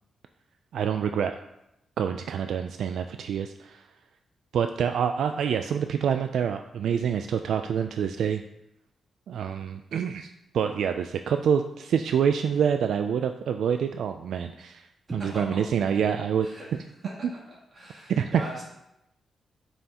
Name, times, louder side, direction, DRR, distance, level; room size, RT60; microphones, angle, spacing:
voice 1, 0.7-1.4 2.0-3.8 4.5-8.4 9.3-14.9 15.1-16.5 18.1-18.3, right 7 dB, 75° right, 7 dB, 0.3 m, -27 dB
voice 2, 15.1-15.6 16.4-17.1 17.7-18.6, right 1 dB, 35° right, -6 dB, 2.8 m, -40 dB
9.4 x 5.6 x 2.9 m, 0.85 s
wide cardioid pair, 165°, 0 cm